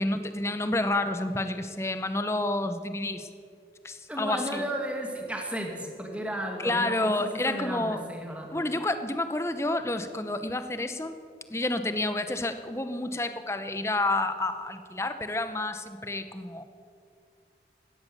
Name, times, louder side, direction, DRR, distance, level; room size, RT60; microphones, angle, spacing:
voice 1, 0.0-3.3 3.8-4.6 6.6-8.0 8.5-11.2 11.5-16.6, left 2 dB, 15° left, 10 dB, 0.8 m, -29 dB
voice 2, 4.1-8.5, right 1 dB, 5° right, 1 dB, 2.0 m, -34 dB
16.5 x 12.5 x 6.9 m, 2.4 s
head